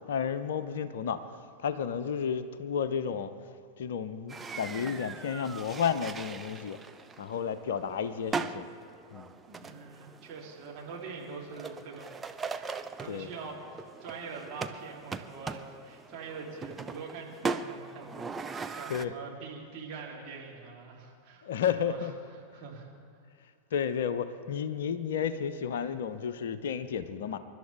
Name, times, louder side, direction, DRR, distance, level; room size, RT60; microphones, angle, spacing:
voice 1, 0.1-1.2 1.6-3.3 3.8-6.8 7.2-8.7 9.1-9.3 13.1-13.3 18.9-19.1 21.4-22.1 23.7-27.4, left 7 dB, 60° left, 11 dB, 0.7 m, -32 dB
sound 1, 4.3-19.0, right 4 dB, 15° right, 0.6 m, -40 dB
voice 2, 9.5-12.2 12.9-21.5 21.8-22.1 22.5-22.9, right 4 dB, 40° right, -3 dB, 3.6 m, -44 dB
28.0 x 12.0 x 3.6 m, 2.1 s
figure-of-eight pair, 90°, 0 cm